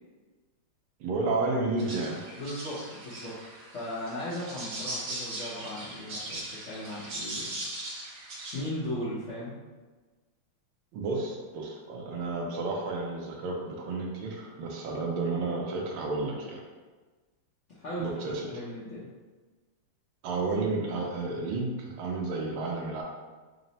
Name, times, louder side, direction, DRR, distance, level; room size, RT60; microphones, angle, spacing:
voice 1, 1.0-2.2 10.9-16.6 18.0-18.5 20.2-23.0, right 3 dB, 80° right, 0 dB, 1.4 m, -31 dB
sound 1, 1.8-8.6, right 1 dB, 55° right, 1.0 m, -39 dB
voice 2, 2.4-3.4 3.7-7.5 8.5-9.6 17.7-19.1, left 1 dB, 80° left, -10 dB, 0.6 m, -37 dB
4.0 x 2.0 x 3.9 m, 1.3 s
omnidirectional pair, 2.4 m